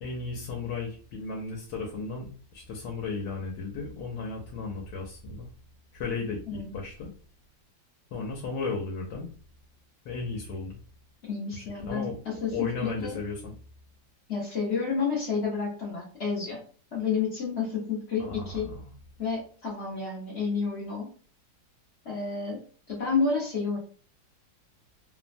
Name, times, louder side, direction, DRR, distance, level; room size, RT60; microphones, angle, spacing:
voice 1, 0.0-5.5 5.9-7.1 8.1-9.3 10.0-10.8 11.5-12.1 12.5-13.5 18.2-18.9, left 4 dB, 75° left, 0 dB, 1.2 m, -35 dB
voice 2, 11.2-12.7 13.0-13.2 14.3-16.6 16.9-18.7 19.2-21.1 22.0-22.6 22.9-23.8, left 5 dB, 60° left, -3 dB, 0.7 m, -30 dB
3.2 x 2.1 x 2.5 m, 0.42 s
omnidirectional pair, 2.1 m